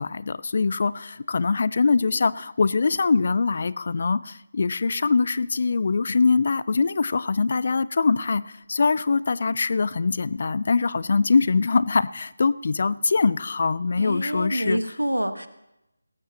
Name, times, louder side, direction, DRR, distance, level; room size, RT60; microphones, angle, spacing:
voice 1, 0.0-14.8, left 4 dB, 45° left, 18 dB, 0.4 m, -23 dB
voice 2, 14.0-15.5, equal, 90° right, 10 dB, 1.3 m, -27 dB
18.5 x 14.5 x 2.9 m, 0.88 s
figure-of-eight pair, 160°, 0 cm